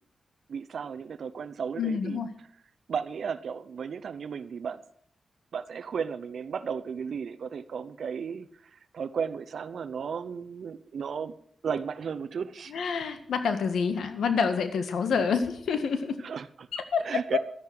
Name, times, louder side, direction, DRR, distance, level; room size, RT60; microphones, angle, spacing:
voice 1, 0.5-2.2 2.9-4.8 5.5-11.3 11.6-12.7 15.1-15.3 16.2-16.7 17.0-17.4, right 6 dB, 70° right, 10 dB, 0.8 m, -34 dB
voice 2, 1.8-2.3 12.7-16.2 16.7-17.4, left 6 dB, 90° left, 9 dB, 1.7 m, -28 dB
12.5 x 10.5 x 7.7 m, 0.66 s
cardioid pair, 85°, 0 cm